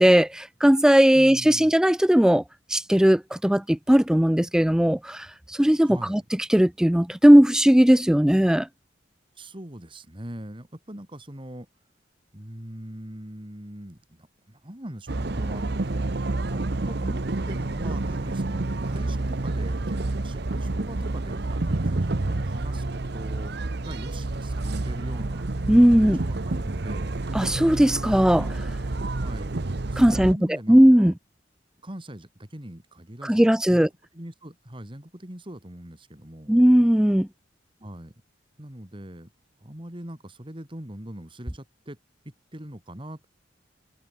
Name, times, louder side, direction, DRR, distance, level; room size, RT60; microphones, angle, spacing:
voice 1, 0.0-2.4 2.7-5.3 5.6-6.2 6.5-8.7 25.7-26.2 27.3-28.5 30.0-30.4 30.7-31.1 33.2-33.9 36.5-37.3, equal, 5° right, 0.3 m, -18 dB
voice 2, 1.1-1.7 5.8-6.2 9.4-11.7 12.3-16.0 16.4-25.5 26.0-27.1 29.2-29.6 29.9-31.1 31.8-33.9 34.1-36.5 37.8-38.1 38.6-39.3 39.6-42.0 42.2-43.3, right 1 dB, 25° right, 2.9 m, -41 dB
sound 1, 15.1-30.3, right 2 dB, 60° right, 0.9 m, -29 dB
head